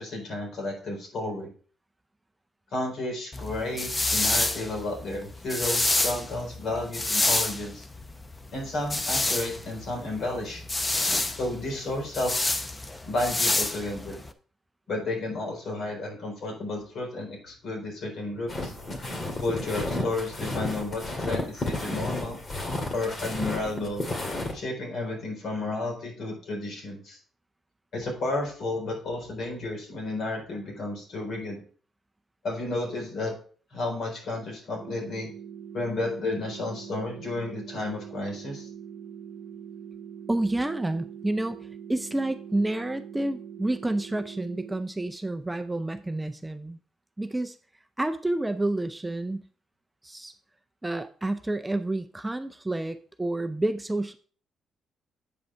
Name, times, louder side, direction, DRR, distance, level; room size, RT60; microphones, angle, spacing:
voice 1, 0.0-1.5 2.7-7.9 8.5-10.6 11.4-12.3 13.1-14.2 14.9-18.7 19.4-22.4 22.9-24.1 24.5-27.2 27.9-31.6 32.4-33.3 33.7-35.3 35.7-38.7, left 2 dB, 60° left, 0 dB, 4.0 m, -32 dB
sound 1, 3.3-14.3, left 2 dB, 20° left, 0.7 m, -28 dB
sound 2, 18.5-24.5, left 2 dB, 40° left, 2.1 m, -32 dB
sound 3, 34.8-44.8, right 8 dB, 45° right, 0.9 m, -43 dB
voice 2, 40.3-46.8 47.2-47.6 48.0-49.4 50.0-50.3 50.8-54.1, right 2 dB, 10° right, 8 dB, 0.5 m, -29 dB
8.3 x 5.4 x 4.4 m, 0.43 s
cardioid pair, 90°, 0 cm